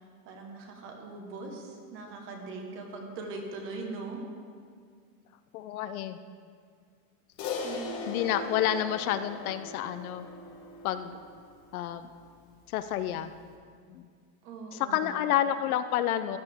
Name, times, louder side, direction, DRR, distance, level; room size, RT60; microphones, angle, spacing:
voice 1, 0.2-4.2 7.6-7.9 14.4-15.2, right 3 dB, 25° right, 2 dB, 1.2 m, -41 dB
voice 2, 5.5-6.2 8.1-10.3 10.8-11.2 11.7-12.1 12.7-13.3 13.9-14.1 14.7-16.4, left 11 dB, 65° left, 10 dB, 0.6 m, -29 dB
Crash cymbal, 7.4-12.0, left 3 dB, 30° left, 1.1 m, -39 dB
15.0 x 10.5 x 3.6 m, 2.1 s
supercardioid pair, 175°, 48 cm